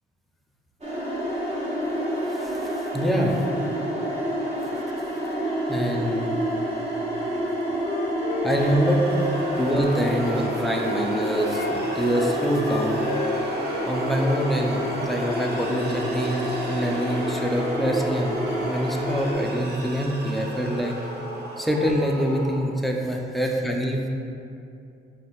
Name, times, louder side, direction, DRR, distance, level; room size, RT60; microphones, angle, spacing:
sound 1, 0.8-19.3, right 1 dB, 30° right, 1.2 m, -28 dB
voice 1, 2.3-3.4 5.7-6.4 8.4-9.0 9.6-13.1 13.8-20.9 21.6-24.1, equal, ahead, 0 dB, 0.4 m, -25 dB
Wind instrument woodwind instrument, 7.3-11.0 11.5-13.9 14.2-15.5, left 4 dB, 60° left, 0.5 m, -34 dB
sound 2, 8.5-22.6, right 1 dB, 55° right, 0.6 m, -36 dB
4.9 x 2.8 x 3.0 m, 2.6 s
cardioid pair, 90°, 20 cm